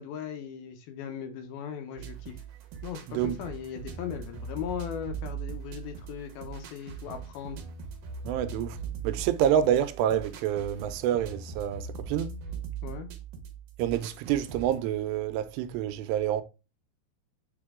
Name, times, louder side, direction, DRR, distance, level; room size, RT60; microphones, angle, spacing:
voice 1, 0.0-2.4 2.8-7.6 12.8-13.1, left 8 dB, 75° left, 2.5 m, -38 dB
sound 1, 2.0-14.8, right 6 dB, 65° right, 2.5 m, -40 dB
voice 2, 8.2-8.8 9.0-12.4 13.8-16.4, right 10 dB, 90° right, 2.8 m, -27 dB
7.1 x 3.8 x 3.6 m
omnidirectional pair, 4.8 m